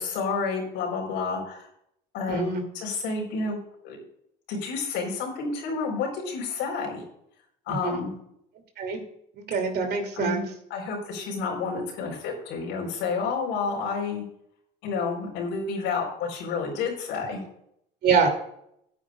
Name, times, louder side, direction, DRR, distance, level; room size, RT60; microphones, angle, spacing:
voice 1, 0.0-1.7 2.1-3.6 3.8-4.0 4.5-7.0 7.7-8.1 10.1-14.2 14.8-17.4, left 4 dB, 80° left, 0 dB, 4.3 m, -30 dB
voice 2, 2.3-2.6 7.7-8.0 8.8-9.0 9.3-10.4 18.0-18.3, right 5 dB, 60° right, 4 dB, 2.8 m, -25 dB
15.0 x 9.4 x 2.4 m, 0.73 s
cardioid pair, 100°, 19 cm